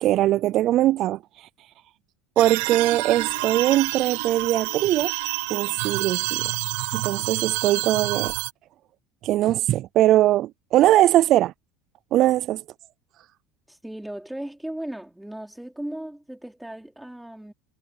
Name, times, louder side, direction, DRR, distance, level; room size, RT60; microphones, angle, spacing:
voice 1, 0.0-1.5 2.4-5.1 5.5-6.5 6.9-8.3 9.2-11.5 12.1-12.6, right 14 dB, 50° right, 0.3 m, -21 dB
sound 1, 2.4-8.5, right 22 dB, 80° right, 0.8 m, -28 dB
voice 2, 13.7-17.5, right 1 dB, 5° right, 4.1 m, -36 dB
supercardioid pair, 115°, 0 cm